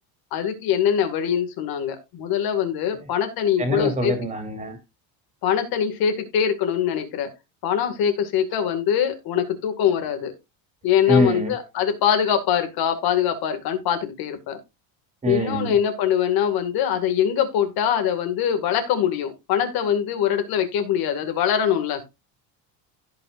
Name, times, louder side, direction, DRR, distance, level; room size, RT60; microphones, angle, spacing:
voice 1, 0.3-4.1 5.4-7.3 7.6-10.3 10.8-14.6 15.3-22.0, left 9 dB, 55° left, 7 dB, 2.2 m, -23 dB
voice 2, 3.6-4.8 11.1-11.5 15.2-15.7, equal, 15° right, 4 dB, 2.9 m, -24 dB
16.5 x 5.6 x 2.5 m, 0.23 s
cardioid pair, 160°, 43 cm